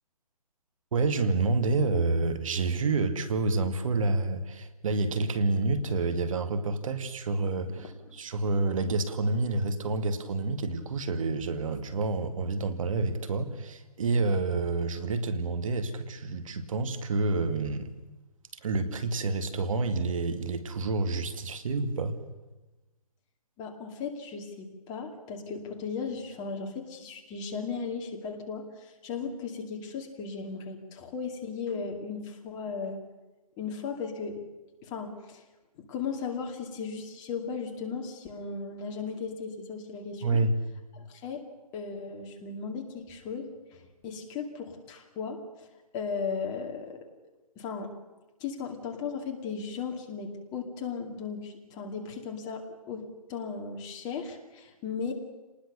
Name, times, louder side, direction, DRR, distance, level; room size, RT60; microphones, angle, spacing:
voice 1, 0.9-17.9 18.6-22.1 40.2-40.5, right 3 dB, 50° right, 9 dB, 2.2 m, -28 dB
voice 2, 7.8-8.2 23.6-33.0 33.6-34.4 34.8-35.4 35.9-40.4 40.9-41.4 41.7-45.7 45.9-47.0 47.6-47.9 48.4-55.1, left 5 dB, 20° left, 2 dB, 2.4 m, -36 dB
28.0 x 20.0 x 6.7 m, 1.1 s
hypercardioid pair, 155°, 21 cm